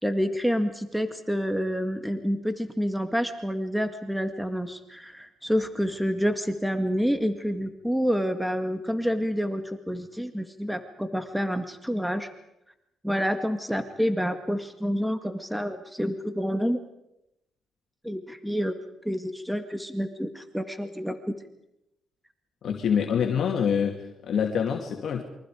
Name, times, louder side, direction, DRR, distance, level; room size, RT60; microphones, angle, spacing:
voice 1, 0.0-12.3 13.0-16.8 18.0-18.8 19.1-21.4, equal, ahead, 8 dB, 1.9 m, -28 dB
voice 2, 22.6-25.2, left 7 dB, 60° left, 1 dB, 2.6 m, -26 dB
28.5 x 24.0 x 5.0 m, 0.85 s
cardioid pair, 90°, 0 cm